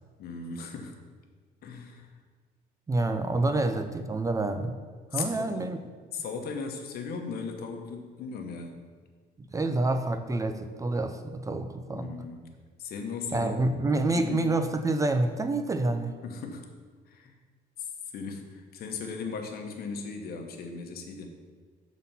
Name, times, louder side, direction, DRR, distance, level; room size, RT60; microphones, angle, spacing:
voice 1, 0.2-0.9 1.6-2.1 3.4-3.6 5.1-5.7 6.1-8.7 11.9-12.4 12.8-13.6 14.1-14.5 16.2-16.6 17.1-17.4 17.8-21.3, left 5 dB, 65° left, 4 dB, 1.0 m, -37 dB
voice 2, 2.9-4.8 5.1-5.8 9.5-12.2 13.3-16.1, right 2 dB, 20° right, 8 dB, 0.4 m, -28 dB
7.2 x 4.1 x 5.5 m, 1.5 s
cardioid pair, 110°, 17 cm